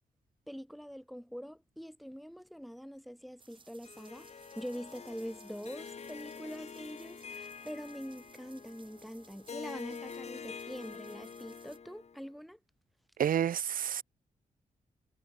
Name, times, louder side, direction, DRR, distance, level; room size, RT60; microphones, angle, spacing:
voice 1, 0.5-4.3 4.6-12.6, equal, ahead, 3.6 m, -44 dB
sound 1, 3.4-11.8, right 4 dB, 35° right, 6.3 m, -61 dB
Harp, 3.8-12.3, left 6 dB, 50° left, 1.8 m, -47 dB
voice 2, 13.2-14.0, right 9 dB, 80° right, 0.8 m, -29 dB
wide cardioid pair, 125°, 14 cm